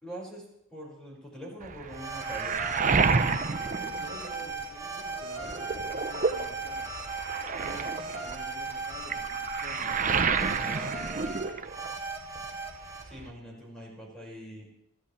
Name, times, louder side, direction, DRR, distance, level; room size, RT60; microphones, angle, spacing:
voice 1, 0.0-2.6 10.5-11.0 13.0-14.7, right 1 dB, 5° left, -3 dB, 5.6 m, -43 dB
Waves surf, 1.6-4.8 5.2-12.1 12.3-13.3, right 5 dB, 40° right, 0.7 m, -30 dB
sound 1, 1.9-13.0, right 3 dB, 15° right, 2.2 m, -37 dB
voice 2, 3.9-6.9 7.5-10.6, right 1 dB, 55° right, -2 dB, 2.5 m, -48 dB
28.0 x 13.5 x 3.4 m, 0.77 s
head